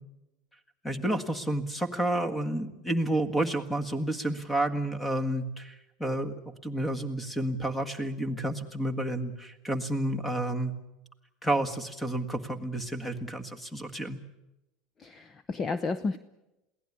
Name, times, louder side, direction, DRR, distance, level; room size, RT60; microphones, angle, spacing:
voice 1, 0.8-5.7 6.0-6.3 6.6-10.7 11.4-14.2, right 1 dB, 5° left, 10 dB, 1.7 m, -30 dB
voice 2, 15.0-16.2, left 4 dB, 25° left, 14 dB, 0.7 m, -32 dB
22.5 x 17.0 x 9.7 m, 0.95 s
supercardioid pair, 145°, 0 cm